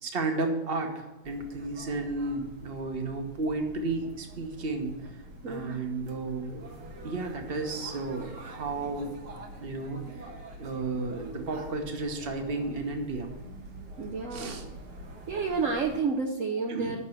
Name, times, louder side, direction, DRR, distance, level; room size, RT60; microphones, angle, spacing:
voice 1, 0.0-4.9 5.5-6.7 7.0-9.1 9.6-10.0 10.6-13.4 14.3-14.6 16.7-17.0, right 3 dB, 40° right, 4 dB, 1.0 m, -33 dB
sound 1, 1.2-16.0, right 1 dB, 80° right, 2.3 m, -46 dB
voice 2, 5.4-5.8 14.0-14.5 15.3-17.0, right 4 dB, 65° right, 2 dB, 0.8 m, -30 dB
8.8 x 6.1 x 6.4 m, 1.2 s
omnidirectional pair, 2.3 m